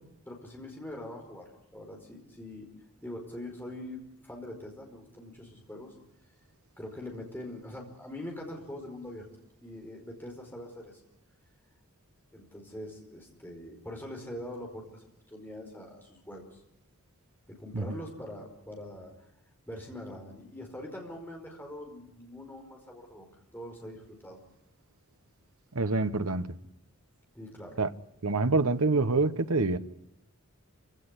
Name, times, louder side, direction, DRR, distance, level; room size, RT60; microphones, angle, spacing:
voice 1, 0.3-2.7 3.0-5.9 6.8-9.3 9.6-11.0 12.3-16.6 17.5-19.1 19.7-23.3 23.5-24.4 27.3-27.8, left 1 dB, 10° left, 4.9 m, -43 dB
voice 2, 25.7-26.5 27.8-27.9 28.2-29.8, right 3 dB, 80° right, 1.1 m, -26 dB
26.5 x 17.0 x 9.9 m
head